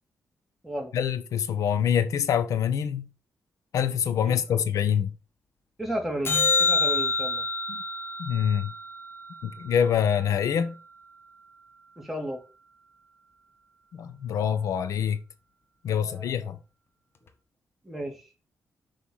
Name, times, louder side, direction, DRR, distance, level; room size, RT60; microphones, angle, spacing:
voice 1, 0.9-3.1 3.7-5.1 7.7-7.8 8.2-8.7 9.4-10.8 13.9-15.2 15.8-16.6, left 8 dB, 90° left, 1.1 m, -25 dB
voice 2, 4.2-4.6 5.8-7.5 12.0-12.4 15.9-16.5 17.8-18.3, right 1 dB, 5° right, 2.8 m, -34 dB
sound 1, 6.3-10.7 17.3-17.4, left 3 dB, 45° left, 1.6 m, -28 dB
6.8 x 5.7 x 5.6 m
cardioid pair, 110°, 6 cm